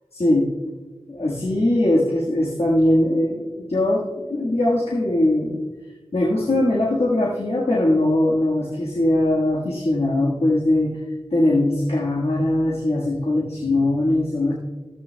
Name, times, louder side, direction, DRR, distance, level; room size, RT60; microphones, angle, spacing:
voice 1, 0.1-0.5 1.1-5.6 6.1-11.0 11.3-14.5, left 1 dB, 80° left, -4 dB, 1.5 m, -20 dB
14.5 x 12.5 x 2.2 m, 1.3 s
wide cardioid pair, 40°, 10 cm